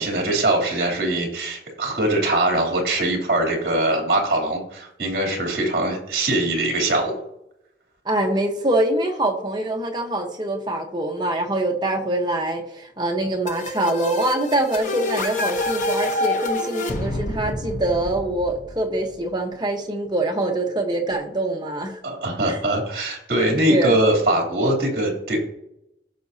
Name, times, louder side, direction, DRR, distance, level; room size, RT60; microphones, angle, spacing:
voice 1, 0.0-7.2 22.0-25.4, right 1 dB, 55° right, 0 dB, 3.0 m, -22 dB
voice 2, 8.0-22.0 22.5-22.6 23.7-24.0, right 1 dB, 25° right, 2 dB, 1.1 m, -24 dB
sound 1, 13.5-19.1, left 2 dB, 45° left, 1.0 m, -27 dB
16.5 x 6.0 x 2.8 m, 0.82 s
head